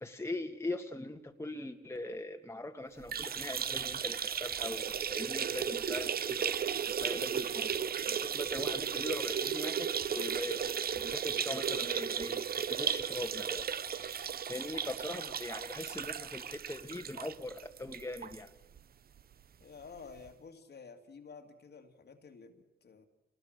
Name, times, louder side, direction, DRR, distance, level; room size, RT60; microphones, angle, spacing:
voice 1, 0.0-6.6 7.0-18.5, left 1 dB, 15° left, 1.8 m, -41 dB
sound 1, 3.0-18.4 18.8-18.9 19.2-19.3 20.3-20.4, right 8 dB, 50° right, 0.7 m, -35 dB
voice 2, 19.6-23.0, left 5 dB, 55° left, 2.3 m, -51 dB
26.5 x 19.5 x 6.6 m
supercardioid pair, 60°, 20 cm